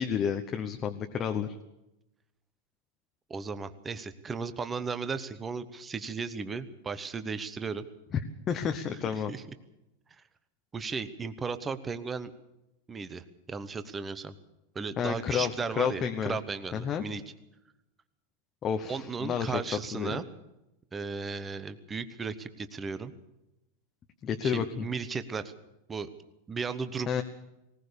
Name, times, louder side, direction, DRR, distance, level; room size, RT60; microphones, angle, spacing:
voice 1, 0.0-1.5 8.5-9.3 15.0-16.4 16.7-17.0 18.6-19.6 19.9-20.2 24.2-24.8 27.1-27.2, left 7 dB, 20° left, 6 dB, 0.9 m, -30 dB
voice 2, 3.3-7.8 9.3-9.4 10.7-12.3 12.9-14.3 14.7-17.2 18.9-20.2 20.9-23.1 24.4-25.5 25.9-26.1 26.5-27.2, right 5 dB, 10° right, 11 dB, 0.9 m, -35 dB
20.0 x 19.5 x 6.9 m, 0.91 s
supercardioid pair, 180°, 0 cm